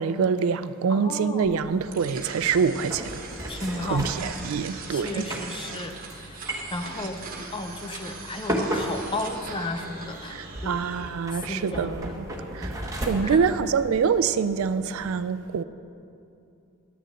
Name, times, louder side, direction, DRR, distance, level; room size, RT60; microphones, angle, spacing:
voice 1, 0.0-3.1 3.8-5.3 10.3-12.1 12.5-15.6, right 6 dB, 65° right, 0.3 m, -25 dB
voice 2, 0.9-1.6 3.5-4.3 4.9-7.2 7.5-10.8 11.3-12.1 13.2-13.5, left 2 dB, 20° left, 0.6 m, -34 dB
sound 1, 1.4-15.1, equal, 15° right, 1.1 m, -36 dB
sound 2, 1.9-11.1, right 4 dB, 40° right, 1.2 m, -41 dB
11.0 x 6.6 x 7.6 m
head